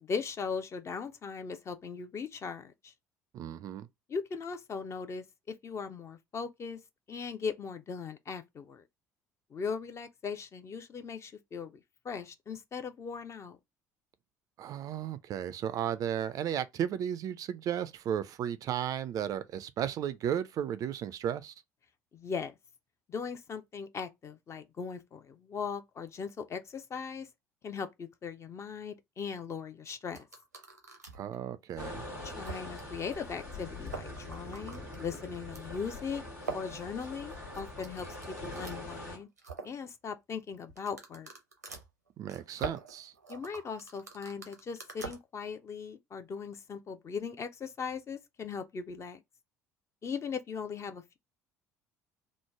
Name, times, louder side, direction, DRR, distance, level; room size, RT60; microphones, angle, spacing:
voice 1, 0.0-2.9 4.1-6.8 7.1-8.8 9.5-11.7 12.0-13.6 22.1-22.5 23.1-27.3 27.6-30.3 32.2-36.2 36.5-38.2 38.4-39.3 39.6-41.3 43.3-49.2 50.0-51.2, left 6 dB, 35° left, 0.5 m, -39 dB
voice 2, 3.3-3.9 14.6-21.5 31.1-32.0 42.2-43.1, right 9 dB, 45° right, 0.4 m, -34 dB
sound 1, 30.1-31.4 31.8-31.9 32.4-32.8 33.1-33.2 33.4-33.5 33.8-35.7 36.4-38.8 39.2-39.8 40.7-45.2, right 4 dB, 90° right, 0.6 m, -44 dB
sound 2, 31.8-39.2, left 1 dB, 80° left, 1.5 m, -43 dB
3.1 x 2.0 x 3.4 m
figure-of-eight pair, 60°, 9 cm